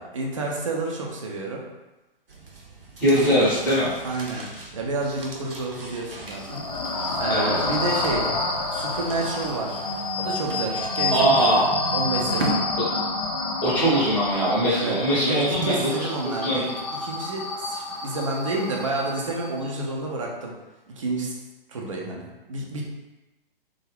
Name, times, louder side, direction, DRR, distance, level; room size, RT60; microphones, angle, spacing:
voice 1, 0.0-1.6 3.2-3.4 4.0-8.3 8.7-9.9 10.2-11.4 11.9-12.6 14.7-16.7 17.0-20.5 21.0-21.4 21.7-22.8, right 2 dB, 35° right, -1 dB, 0.4 m, -30 dB
sound 1, 2.3-12.5, right 2 dB, 70° right, 0.7 m, -39 dB
voice 2, 3.0-3.9 7.3-7.5 11.1-11.7 13.6-15.8 16.4-16.6, right 1 dB, 5° left, -9 dB, 0.7 m, -21 dB
sound 2, 6.3-19.7, left 2 dB, 40° left, 0.4 m, -29 dB
2.4 x 2.1 x 3.2 m, 1.0 s
figure-of-eight pair, 125°, 29 cm